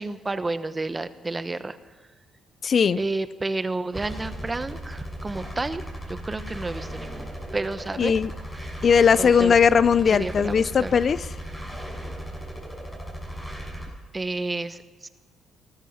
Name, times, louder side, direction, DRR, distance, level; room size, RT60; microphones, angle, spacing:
voice 1, 0.0-1.8 3.0-5.8 6.2-8.1 9.2-9.6 10.1-10.9 14.1-15.1, right 2 dB, 20° right, 12 dB, 1.1 m, -30 dB
voice 2, 2.6-3.0 8.0-8.3 8.8-11.3, left 6 dB, 50° left, 17 dB, 0.4 m, -19 dB
sound 1, 3.9-13.9, equal, 5° left, 6.2 m, -36 dB
19.0 x 13.0 x 5.7 m, 1.4 s
cardioid pair, 90°, 0 cm